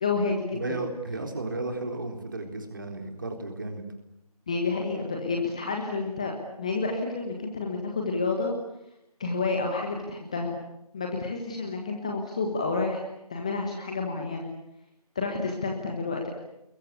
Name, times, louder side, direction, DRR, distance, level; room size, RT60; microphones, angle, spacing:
voice 1, 0.0-0.6 4.5-6.3 6.6-8.5 9.2-10.6 10.9-13.0 13.3-14.5 15.1-16.3, left 4 dB, 10° left, 1 dB, 1.3 m, -29 dB
voice 2, 0.5-3.8, right 2 dB, 30° right, 5 dB, 4.0 m, -34 dB
28.0 x 22.0 x 8.5 m, 0.82 s
figure-of-eight pair, 170°, 20 cm